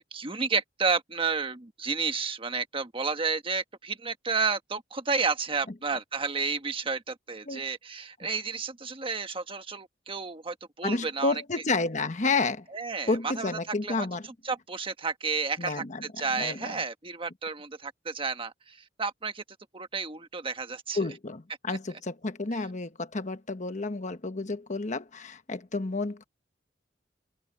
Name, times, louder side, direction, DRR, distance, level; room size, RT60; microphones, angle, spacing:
voice 1, 0.0-11.3 12.7-14.1 14.4-19.4 19.7-21.0 21.7-21.8, right 4 dB, 30° right, 1.4 m, -31 dB
voice 2, 10.8-12.7 13.1-14.3 15.6-16.0 16.4-16.8 20.9-26.2, left 3 dB, 40° left, 1.2 m, -30 dB
open air
head